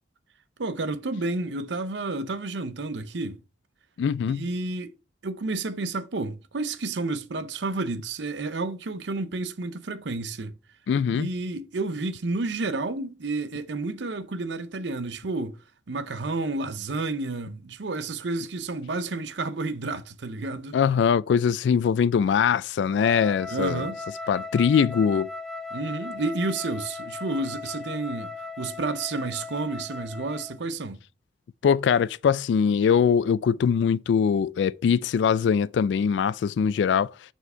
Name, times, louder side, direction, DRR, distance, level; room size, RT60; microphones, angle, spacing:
voice 1, 0.6-3.4 4.3-4.9 5.2-10.6 11.1-15.6 15.9-20.8 23.5-24.0 25.7-31.0, right 3 dB, 80° right, 0.7 m, -30 dB
voice 2, 4.0-4.5 10.9-11.3 20.7-23.8 24.3-25.3 31.6-37.1, left 7 dB, 80° left, 0.3 m, -22 dB
Wind instrument woodwind instrument, 23.0-30.6, left 3 dB, ahead, 0.6 m, -37 dB
6.8 x 4.5 x 5.5 m
head